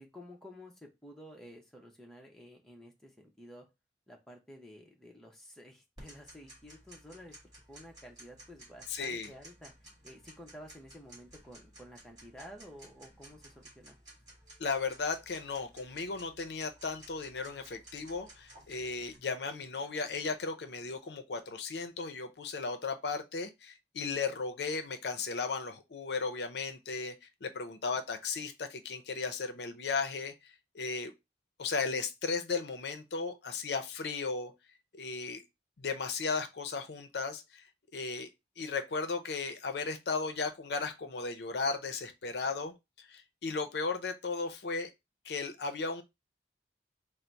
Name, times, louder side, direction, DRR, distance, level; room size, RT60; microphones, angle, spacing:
voice 1, 0.0-3.7 4.1-7.4 7.7-9.7 10.0-14.0, equal, 5° left, 0.7 m, -52 dB
Tick-tock, 6.0-19.2, right 1 dB, 25° right, 1.8 m, -56 dB
voice 2, 8.9-9.3 14.6-31.1 31.6-34.5 34.9-35.4 35.8-37.6 37.9-38.3 38.6-44.9 45.2-46.0, left 4 dB, 70° left, 0.5 m, -36 dB
3.9 x 2.0 x 4.4 m
head